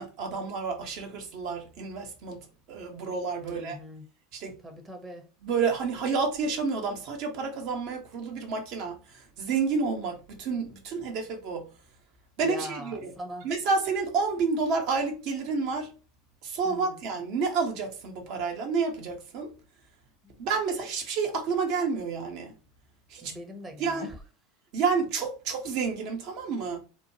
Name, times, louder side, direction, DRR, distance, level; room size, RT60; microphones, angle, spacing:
voice 1, 0.0-3.8 4.3-4.6 5.4-11.7 12.4-13.1 13.4-15.9 16.4-19.5 20.4-22.5 23.1-23.3 23.8-24.1 24.7-26.8, right 5 dB, 55° right, 0.8 m, -30 dB
voice 2, 3.4-4.1 4.6-5.3 12.4-13.5 16.6-17.0 20.2-20.3 23.2-24.2, equal, 25° right, 0.8 m, -42 dB
3.0 x 2.2 x 2.7 m
hypercardioid pair, 85°, 0 cm